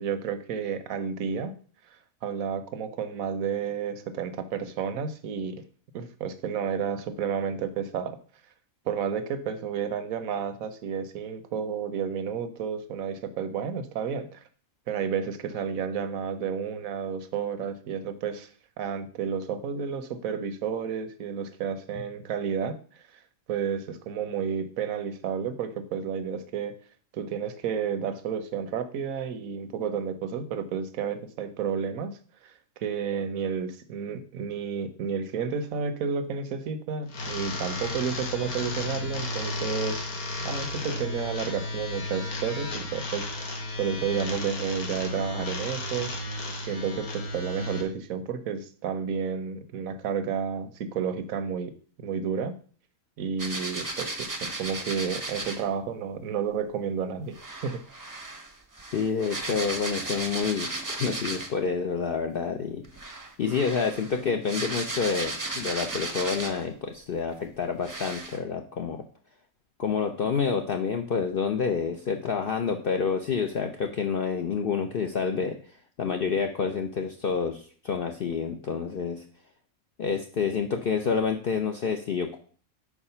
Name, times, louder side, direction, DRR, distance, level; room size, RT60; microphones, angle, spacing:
voice 1, 0.0-1.6 1.9-5.6 5.9-8.2 8.9-14.4 14.9-18.5 18.8-23.0 23.5-26.8 27.1-40.1 40.4-43.5 43.8-51.7 52.0-52.5 53.2-57.8, right 7 dB, 75° right, 10 dB, 1.1 m, -31 dB
machine broken, 37.1-47.8, left 2 dB, 85° left, 1.7 m, -33 dB
sound 1, 53.4-55.7 57.3-61.7 62.8-66.7 67.3-67.4 67.8-68.4, right 2 dB, 20° right, 0.6 m, -35 dB
voice 2, 58.9-62.8 63.4-69.0 69.8-79.2 80.0-82.4, left 5 dB, 60° left, 4 dB, 0.6 m, -28 dB
4.8 x 4.8 x 5.5 m, 0.43 s
omnidirectional pair, 1.5 m